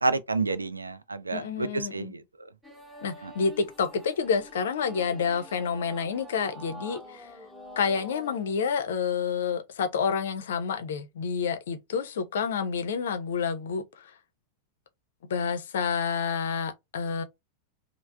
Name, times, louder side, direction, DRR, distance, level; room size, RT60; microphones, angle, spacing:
voice 1, 0.0-2.2 3.2-3.3, right 3 dB, 80° right, 0.3 m, -29 dB
voice 2, 1.3-2.1 3.0-7.3 7.8-14.1 15.3-17.2, left 6 dB, 60° left, 0.5 m, -29 dB
sound 1, 2.6-8.5, equal, 5° right, 0.9 m, -46 dB
3.2 x 2.0 x 2.2 m
figure-of-eight pair, 90°, 0 cm